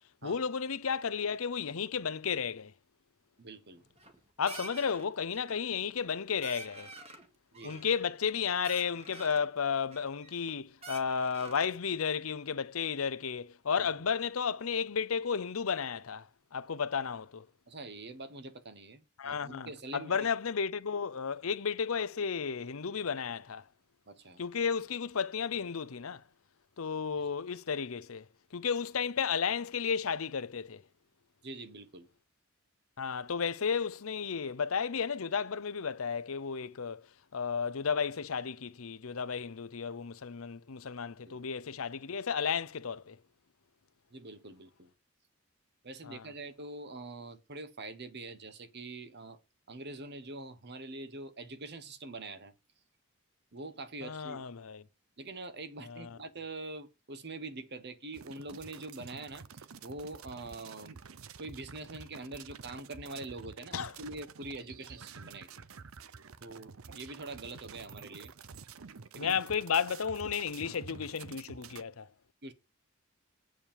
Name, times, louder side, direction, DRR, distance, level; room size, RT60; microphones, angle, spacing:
voice 1, 0.2-2.7 4.4-6.9 7.6-16.3 16.5-17.5 19.2-23.6 24.4-26.2 26.8-28.2 28.5-30.8 33.0-37.1 37.3-43.2 46.0-46.2 54.0-54.8 55.9-56.1 63.7-63.9 69.2-72.1, left 6 dB, 85° left, 0.7 m, -33 dB
voice 2, 3.4-3.8 7.5-7.8 13.8-14.1 17.7-20.3 24.1-24.4 27.2-27.3 31.4-32.1 41.3-41.4 44.1-44.9 45.8-49.4 49.7-52.5 53.5-54.4 55.2-61.0 61.4-65.6 66.0-66.1 66.4-68.3 69.1-69.4 72.4-72.5, right 2 dB, 55° right, 1.3 m, -44 dB
sound 1, 3.8-4.2 4.5-5.0 5.3-5.7 6.0-6.1 6.4-7.3 7.5-8.3 8.6-9.5 9.9-10.5 10.8-11.7, right 3 dB, 30° right, 2.2 m, -48 dB
sound 2, 58.1-71.8, right 5 dB, 80° right, 0.7 m, -49 dB
8.7 x 4.9 x 7.4 m
head